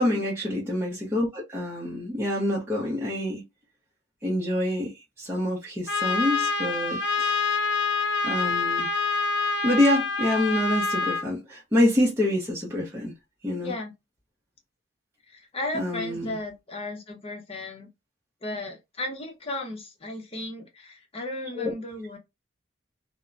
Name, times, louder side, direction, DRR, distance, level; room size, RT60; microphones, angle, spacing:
voice 1, 0.0-3.4 4.2-4.9 5.2-7.3 8.2-8.9 9.6-13.1 13.4-13.7 15.7-16.4 21.6-21.7, left 1 dB, 15° right, 0.7 m, -26 dB
Trumpet, 5.9-11.2, left 4 dB, 75° left, 0.7 m, -26 dB
voice 2, 13.6-13.9 15.3-17.9 18.4-22.2, left 1 dB, 30° left, 0.8 m, -35 dB
2.8 x 2.1 x 2.4 m
head